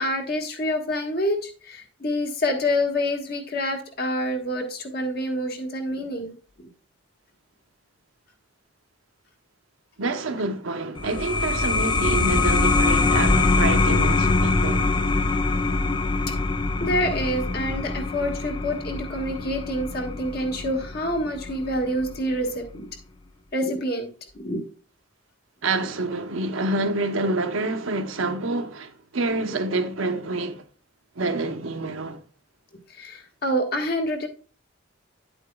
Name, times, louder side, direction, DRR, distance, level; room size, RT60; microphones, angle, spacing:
voice 1, 0.0-6.3 16.3-16.4 16.8-22.9 23.5-24.1 24.3-24.6 32.9-34.3, left 1 dB, 45° left, 1.6 m, -27 dB
voice 2, 10.0-14.9 25.6-30.6 31.2-32.2, right 2 dB, 75° right, 1.0 m, -27 dB
sound 1, 10.9-22.1, left 3 dB, 20° left, 0.4 m, -23 dB
10.0 x 8.0 x 2.3 m
head